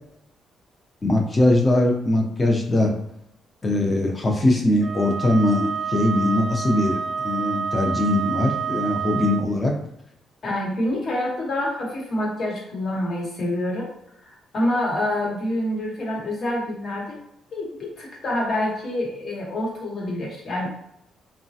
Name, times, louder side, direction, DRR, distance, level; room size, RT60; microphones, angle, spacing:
voice 1, 1.0-2.9 3.6-9.7, left 1 dB, 25° left, 1 dB, 0.6 m, -21 dB
Wind instrument woodwind instrument, 4.8-9.5, right 6 dB, 35° right, 0.4 m, -28 dB
voice 2, 10.4-13.9 14.5-17.2 17.5-20.7, left 1 dB, 55° left, -2 dB, 1.0 m, -26 dB
3.0 x 2.1 x 2.7 m, 0.76 s
cardioid pair, 90°, 0 cm